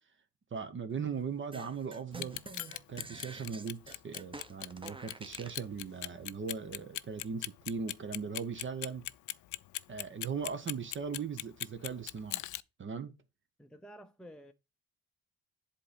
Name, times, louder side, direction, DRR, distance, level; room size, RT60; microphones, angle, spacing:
voice 1, 0.5-2.4 2.9-9.0 9.9-12.4 12.8-13.1, right 6 dB, 40° right, 1.0 m, -39 dB
sound 1, 1.5-5.6, right 3 dB, 15° right, 1.0 m, -48 dB
Clock, 2.1-12.6, left 16 dB, 75° left, 0.5 m, -39 dB
voice 2, 13.6-14.5, equal, 5° left, 0.6 m, -51 dB
7.7 x 4.3 x 5.1 m
cardioid pair, 90°, 30 cm